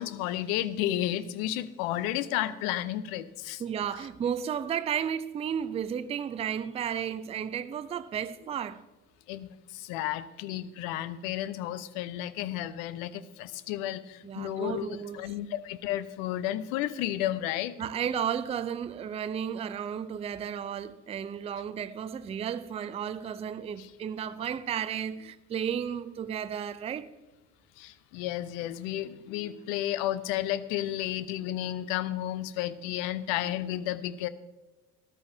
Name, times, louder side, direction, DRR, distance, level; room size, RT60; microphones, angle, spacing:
voice 1, 0.0-3.6 9.3-14.9 15.1-17.8 23.8-23.9 27.8-34.3, left 13 dB, 60° left, 0.8 m, -32 dB
voice 2, 3.6-8.8 14.2-15.3 17.8-27.1, right 8 dB, 15° right, 0.4 m, -33 dB
13.5 x 12.0 x 2.7 m
figure-of-eight pair, 60°, 46 cm